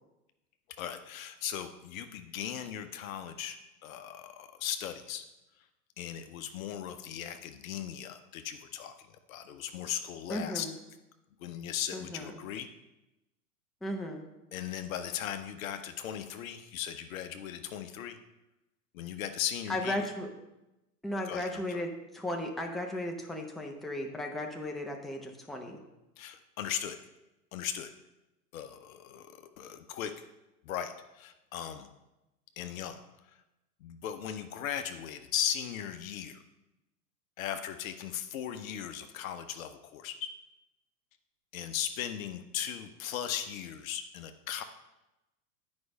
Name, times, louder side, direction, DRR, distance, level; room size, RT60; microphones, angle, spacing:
voice 1, 0.8-5.2 6.0-8.9 9.3-10.7 11.4-12.7 14.5-18.2 18.9-20.1 21.2-21.8 26.2-27.0 27.5-27.9 28.5-30.3 30.6-31.9 32.6-33.0 33.8-36.4 37.4-40.3 41.5-44.6, left 10 dB, 55° left, 8 dB, 0.8 m, -37 dB
voice 2, 10.3-10.7 11.9-12.3 13.8-14.3 19.7-20.3 21.0-25.8, left 1 dB, ahead, 1 dB, 0.9 m, -35 dB
9.6 x 5.3 x 5.2 m, 0.97 s
figure-of-eight pair, 100°, 49 cm